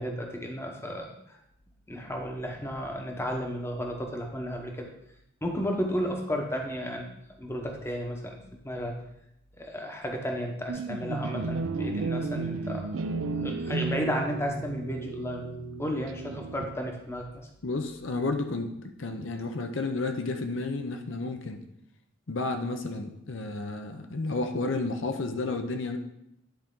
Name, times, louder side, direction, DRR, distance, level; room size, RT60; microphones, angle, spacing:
voice 1, 0.0-1.4 1.9-4.9 5.4-8.3 8.6-9.0 9.6-12.9 13.4-15.5 15.8-17.5, equal, 15° left, 1 dB, 0.9 m, -33 dB
sound 1, 10.7-17.0, right 3 dB, 75° right, 0.6 m, -33 dB
voice 2, 17.6-21.6 22.3-26.0, left 3 dB, 65° left, 5 dB, 0.7 m, -32 dB
10.5 x 4.4 x 3.7 m, 0.79 s
head